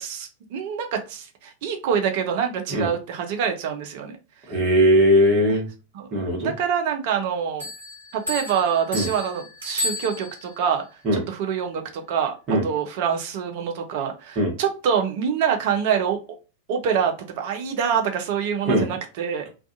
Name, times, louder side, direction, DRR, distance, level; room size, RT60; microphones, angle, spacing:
voice 1, 0.0-4.2 5.3-5.4 5.9-6.1 6.4-7.7 8.1-10.8 11.1-12.3 12.6-16.2 16.7-19.5, right 7 dB, 50° right, 0.5 m, -25 dB
voice 2, 4.5-5.7 6.1-6.5 8.9-9.1 11.0-11.2 12.5-12.6 14.4-14.5 18.7-18.9, equal, 30° right, 1.1 m, -19 dB
sound 1, 7.6-10.6, left 1 dB, 75° right, 0.9 m, -32 dB
2.4 x 2.3 x 2.5 m
figure-of-eight pair, 90°, 0 cm